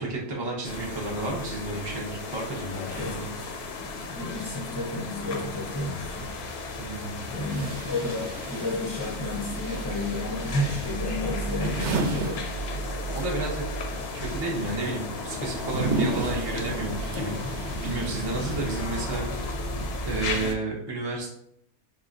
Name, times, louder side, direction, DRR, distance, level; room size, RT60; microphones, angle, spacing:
voice 1, 0.0-3.3 6.8-7.2 13.1-13.6 14.0-19.6 20.0-21.3, right 2 dB, 30° right, -3 dB, 0.5 m, -32 dB
sound 1, 0.6-20.6, left 1 dB, 65° left, 0.7 m, -34 dB
voice 2, 3.8-6.3 7.3-12.4, left 2 dB, 25° left, -1 dB, 0.5 m, -31 dB
sound 2, 7.4-13.2 13.5-19.3, right 3 dB, 75° right, 0.9 m, -35 dB
5.0 x 2.1 x 2.4 m, 0.73 s
omnidirectional pair, 1.2 m